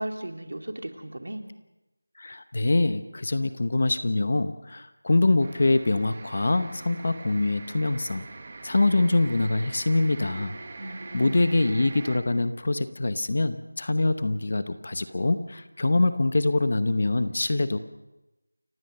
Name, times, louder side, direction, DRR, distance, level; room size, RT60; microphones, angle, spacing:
voice 1, 0.0-1.5 10.8-11.4, right 1 dB, 55° right, 5 dB, 2.6 m, -36 dB
voice 2, 2.2-8.2 8.6-10.6 11.1-17.8, left 2 dB, 30° left, 12 dB, 0.8 m, -24 dB
sound 1, 5.4-12.2, right 3 dB, 20° right, 1.3 m, -43 dB
29.5 x 15.5 x 6.7 m, 1.0 s
figure-of-eight pair, 180°, 0 cm